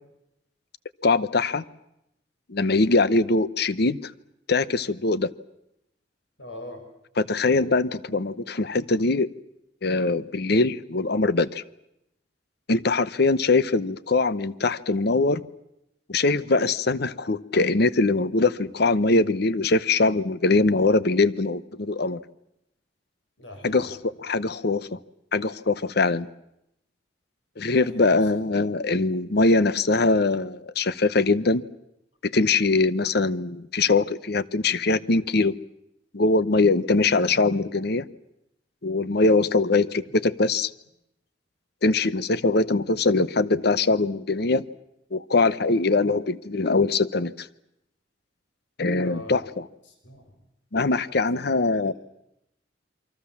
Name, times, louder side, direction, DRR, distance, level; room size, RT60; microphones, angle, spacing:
voice 1, 1.0-1.6 2.5-4.1 4.5-5.3 7.2-9.3 9.8-11.6 12.7-15.5 16.1-22.2 23.6-25.0 25.3-26.3 27.6-31.6 32.2-35.6 36.1-38.0 38.8-40.7 41.8-44.7 45.1-47.5 48.8-49.7 50.7-51.9, left 3 dB, 60° left, 17 dB, 0.9 m, -22 dB
voice 2, 6.4-6.8 23.4-23.9 27.7-28.2 49.0-49.4 50.0-50.2 51.1-51.4 51.7-51.9, left 1 dB, 90° left, 5 dB, 5.5 m, -42 dB
28.5 x 23.5 x 7.2 m, 0.82 s
head